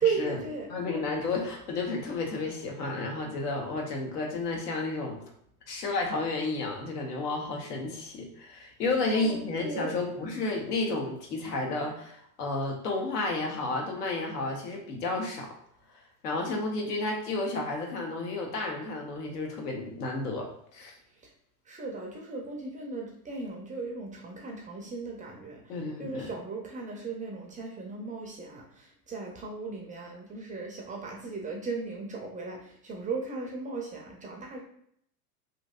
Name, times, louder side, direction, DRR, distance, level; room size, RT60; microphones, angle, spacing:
voice 1, 0.0-0.7 9.1-10.0 21.7-25.7 26.0-34.6, right 4 dB, 20° right, 0 dB, 0.4 m, -36 dB
voice 2, 0.7-5.2 5.7-15.5 16.2-20.9 25.7-26.3, left 3 dB, 80° left, 1 dB, 0.9 m, -32 dB
3.0 x 2.6 x 2.3 m, 0.69 s
hypercardioid pair, 90°, 46 cm